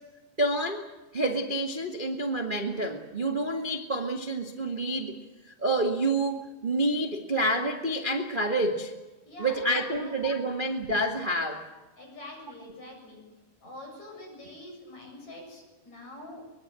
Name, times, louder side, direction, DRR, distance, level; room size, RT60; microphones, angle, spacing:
voice 1, 0.4-0.9 1.1-5.2 5.6-8.9 9.4-11.6, right 1 dB, 75° right, 2 dB, 0.4 m, -28 dB
voice 2, 9.3-10.5 12.0-13.2 13.6-16.4, left 1 dB, 45° left, 1 dB, 8.9 m, -45 dB
25.0 x 21.5 x 7.7 m, 1.2 s
omnidirectional pair, 4.5 m